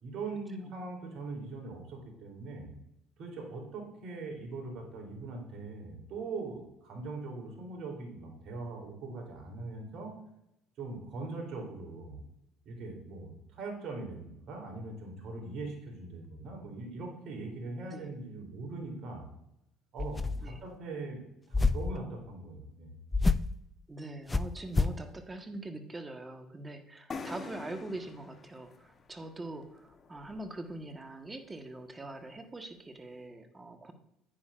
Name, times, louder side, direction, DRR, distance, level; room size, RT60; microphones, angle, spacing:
voice 1, 0.0-2.7 3.2-10.1 10.8-12.2 12.6-19.2 19.9-21.2 21.5-22.9, right 3 dB, 60° right, 2 dB, 3.4 m, -41 dB
sound 1, 20.0-20.6 21.5-22.0 23.1-23.6 24.3-25.0, left 3 dB, 20° left, 0.4 m, -28 dB
voice 2, 23.9-33.9, right 2 dB, 20° right, 6 dB, 1.3 m, -43 dB
sound 2, 27.1-30.7, left 4 dB, 35° left, 1.0 m, -46 dB
10.0 x 9.3 x 2.5 m, 0.82 s
supercardioid pair, 85°, 0 cm